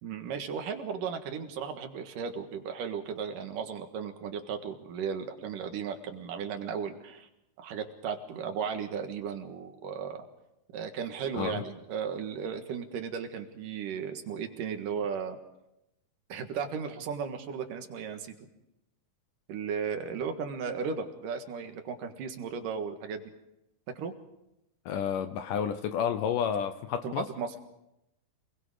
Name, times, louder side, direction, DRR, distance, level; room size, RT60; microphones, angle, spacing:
voice 1, 0.0-7.3 7.6-10.3 10.7-15.4 16.3-18.4 19.5-23.2 24.0-24.1 27.0-27.6, right 6 dB, 65° right, 5 dB, 3.1 m, -35 dB
voice 2, 24.9-27.3, left 8 dB, 75° left, 10 dB, 2.2 m, -30 dB
27.5 x 20.5 x 5.0 m, 0.87 s
omnidirectional pair, 4.3 m